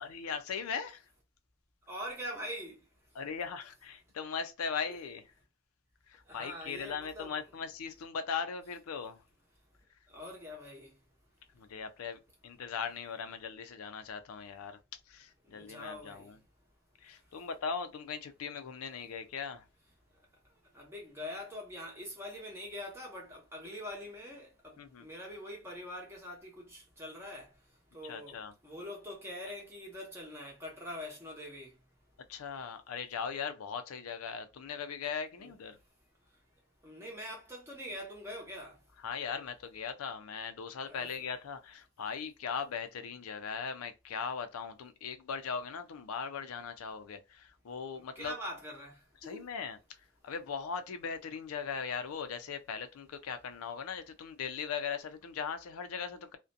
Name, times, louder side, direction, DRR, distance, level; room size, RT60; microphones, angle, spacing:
voice 1, 0.0-1.1 3.1-5.2 6.1-9.2 11.6-14.8 15.1-16.4 17.0-19.7 24.8-25.1 28.0-28.5 32.3-35.8 39.0-48.3 49.2-49.8 50.2-56.4, left 6 dB, 90° left, 0.4 m, -39 dB
voice 2, 1.9-2.8 6.3-7.4 10.1-10.9 15.5-16.3 20.7-27.5 27.9-31.7 35.4-35.5 36.8-38.8 40.8-41.3 47.9-49.5, left 1 dB, 10° right, 0.8 m, -44 dB
2.4 x 2.1 x 2.6 m
head